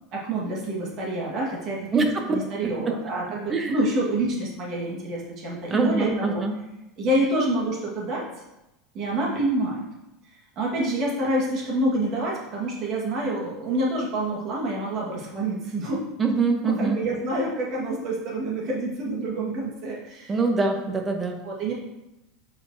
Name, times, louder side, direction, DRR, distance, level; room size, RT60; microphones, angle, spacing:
voice 1, 0.1-6.4 7.0-8.2 8.9-9.8 10.5-16.0 16.6-20.3 21.4-21.7, right 1 dB, 40° right, -3 dB, 1.5 m, -27 dB
voice 2, 1.9-2.4 2.6-2.7 3.5-3.8 5.7-6.5 16.2-17.0 20.3-21.4, right 3 dB, 20° right, 3 dB, 0.8 m, -24 dB
7.4 x 4.8 x 2.7 m, 0.94 s
supercardioid pair, 155°, 0 cm